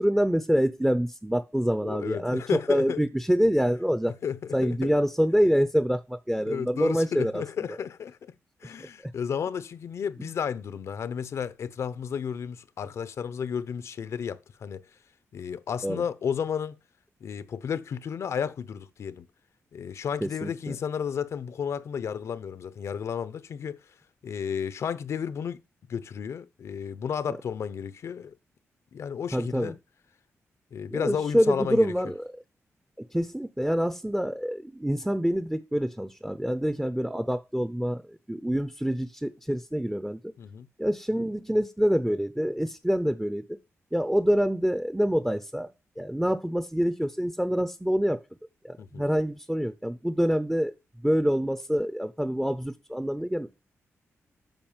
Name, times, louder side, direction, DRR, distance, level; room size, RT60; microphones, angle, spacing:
voice 1, 0.0-2.4 2.7-4.1 4.5-7.4 9.0-9.1 10.2-10.3 15.8-16.0 20.2-20.8 29.3-29.7 30.9-32.2 33.0-40.2 40.8-43.4 43.9-45.7 46.0-48.2 48.6-50.7 51.0-53.5, equal, 5° right, 0.7 m, -26 dB
voice 2, 1.8-3.0 4.0-4.9 6.4-8.2 8.6-14.8 15.3-16.7 17.2-19.3 19.7-23.8 24.2-25.6 25.9-28.3 28.9-29.8 30.7-31.9 40.4-40.7 48.8-49.0, left 7 dB, 70° left, 0.9 m, -32 dB
9.0 x 5.9 x 7.4 m
wide cardioid pair, 135°, 5 cm